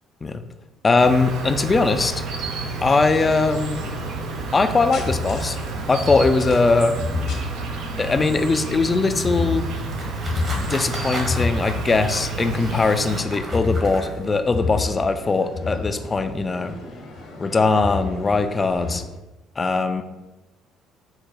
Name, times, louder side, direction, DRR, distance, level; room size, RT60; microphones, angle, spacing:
voice 1, 0.8-2.1 2.8-3.8 4.5-5.6 5.9-7.0 8.0-9.7 10.6-16.7 17.4-19.0 19.6-20.0, left 3 dB, 30° left, 9 dB, 0.4 m, -20 dB
Insect, 1.0-13.2, right 3 dB, 65° right, 0.5 m, -30 dB
sound 1, 3.1-19.0, left 3 dB, 65° left, 0.9 m, -32 dB
sound 2, 9.5-14.4, right 1 dB, 40° right, 1.2 m, -35 dB
4.8 x 2.1 x 4.0 m, 1.1 s
hypercardioid pair, 55°, 0 cm